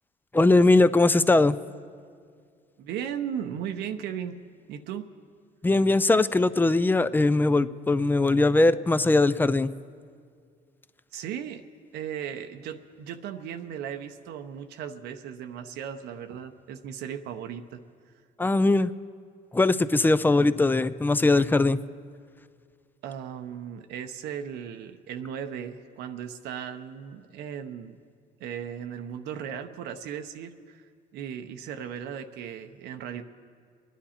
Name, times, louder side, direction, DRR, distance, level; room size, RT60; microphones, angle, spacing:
voice 1, 0.3-1.6 5.6-9.7 18.4-18.9 19.5-21.8, left 2 dB, 10° left, 15 dB, 0.4 m, -20 dB
voice 2, 2.8-4.4 4.7-5.1 11.1-11.6 11.9-17.8 23.0-28.0 28.4-30.9 31.1-33.2, right 8 dB, 80° right, 7 dB, 0.8 m, -36 dB
26.5 x 10.0 x 4.3 m, 2.1 s
cardioid pair, 110°, 17 cm